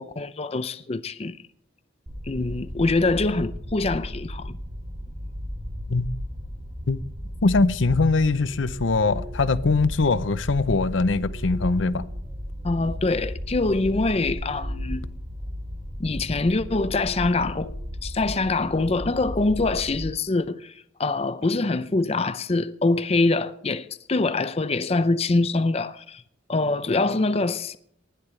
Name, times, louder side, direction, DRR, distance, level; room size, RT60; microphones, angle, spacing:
voice 1, 0.0-1.4 2.2-4.6 12.6-15.1 16.0-17.7 18.0-20.7 21.0-26.2 26.5-27.8, left 3 dB, 30° left, 0.5 m, -24 dB
sound 1, 2.1-20.0, equal, 35° right, 2.7 m, -34 dB
voice 2, 7.4-12.1, left 3 dB, 75° left, 0.7 m, -22 dB
sound 2, 8.1-9.6 10.6-12.7 13.2-15.0 15.3-15.6 16.1-18.4, left 2 dB, ahead, 3.0 m, -48 dB
19.5 x 12.0 x 3.3 m
head